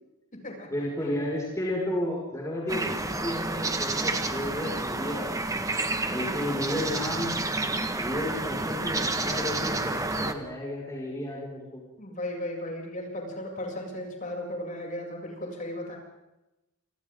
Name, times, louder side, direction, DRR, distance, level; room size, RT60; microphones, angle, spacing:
voice 1, 0.7-5.4 6.1-7.4 8.0-11.8, left 1 dB, 15° left, -4 dB, 6.1 m, -32 dB
sound 1, 2.7-10.3, right 2 dB, 15° right, 1.7 m, -30 dB
voice 2, 5.9-6.5 12.0-16.0, left 1 dB, 35° left, 0 dB, 7.7 m, -36 dB
29.5 x 28.5 x 3.9 m, 0.96 s
head